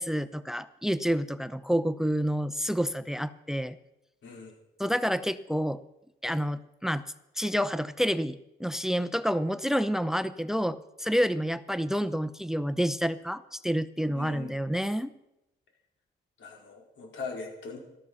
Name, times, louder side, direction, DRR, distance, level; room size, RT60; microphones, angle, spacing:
voice 1, 0.0-3.8 4.8-5.8 6.2-7.0 7.4-15.1, equal, ahead, 15 dB, 0.6 m, -29 dB
voice 2, 4.2-4.5 14.1-14.6 16.4-17.8, left 4 dB, 70° left, 1 dB, 4.8 m, -41 dB
14.0 x 12.5 x 7.0 m, 0.89 s
cardioid pair, 90°, 20 cm